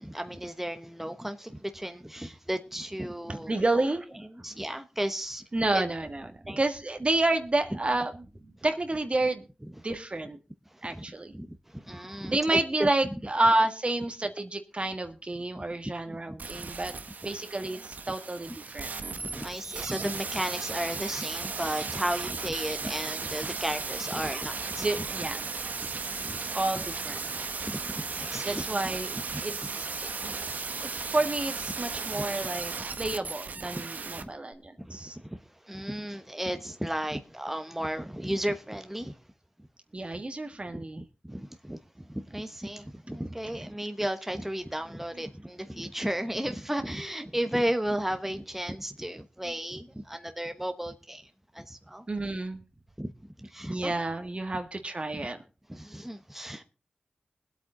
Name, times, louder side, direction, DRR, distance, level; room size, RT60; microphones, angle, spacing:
voice 1, 0.0-3.5 4.3-5.4 5.7-5.8 6.5-6.6 10.7-11.0 11.3-12.9 15.5-15.6 16.1-16.7 19.2-24.9 26.2-26.6 27.7-28.7 29.3-29.4 30.3-30.4 32.1-32.3 33.7-33.9 34.2-34.3 34.8-39.2 40.7-40.8 41.2-52.0 53.0-53.1 53.4-53.9 55.7-56.6, right 1 dB, 10° right, 1.0 m, -34 dB
voice 2, 3.3-4.0 5.5-6.3 6.6-8.1 8.4-9.5 9.8-10.4 10.8-11.3 12.0-16.9 17.2-18.9 24.8-25.4 26.5-27.4 28.4-30.1 30.8-35.1 39.9-41.0 52.1-52.6 53.7-55.4, right 2 dB, 40° right, 1.6 m, -30 dB
sound 1, 16.4-34.2 34.5-34.6, right 4 dB, 80° right, 1.1 m, -36 dB
20.5 x 8.5 x 3.8 m
cardioid pair, 45°, 3 cm